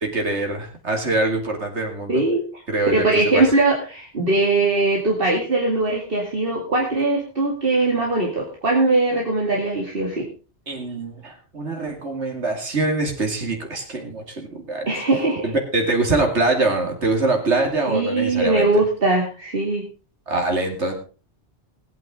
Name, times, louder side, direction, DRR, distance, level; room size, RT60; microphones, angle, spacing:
voice 1, 0.0-2.2 2.7-3.4 10.7-15.0 15.4-18.7 20.3-20.9, right 2 dB, 90° right, 2 dB, 2.8 m, -24 dB
voice 2, 2.1-2.6 2.9-10.3 14.9-15.5 17.9-19.8, right 2 dB, 55° right, -1 dB, 2.5 m, -21 dB
20.0 x 9.1 x 3.7 m, 0.35 s
omnidirectional pair, 1.1 m